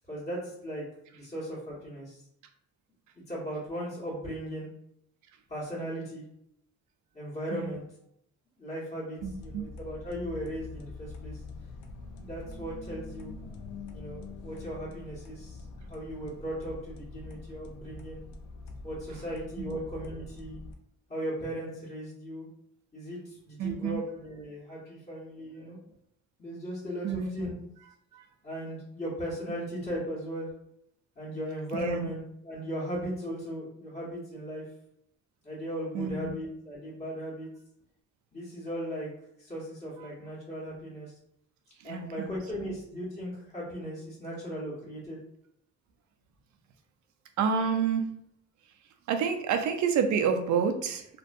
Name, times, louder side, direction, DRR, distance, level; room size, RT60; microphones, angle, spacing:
voice 1, 0.1-0.8 1.1-2.2 3.3-4.7 5.5-6.2 7.1-7.8 8.6-11.4 12.2-13.3 13.9-18.2 18.8-20.6 21.1-22.5 22.9-25.8 26.4-27.5 28.4-30.5 31.1-34.6 35.4-37.5 38.3-39.1 39.4-41.1 41.8-45.2, equal, 20° left, -7 dB, 1.2 m, -37 dB
sound 1, 9.2-20.7, left 3 dB, 75° left, 0.5 m, -44 dB
voice 2, 9.2-9.7 19.6-19.8 23.6-24.0 27.0-27.5 28.1-28.2 31.7-32.1 35.9-36.3 41.8-42.3 42.6-42.8 47.4-48.1 49.1-51.1, right 6 dB, 70° right, 7 dB, 0.5 m, -29 dB
2.6 x 2.2 x 2.5 m, 0.73 s
cardioid pair, 90°, 30 cm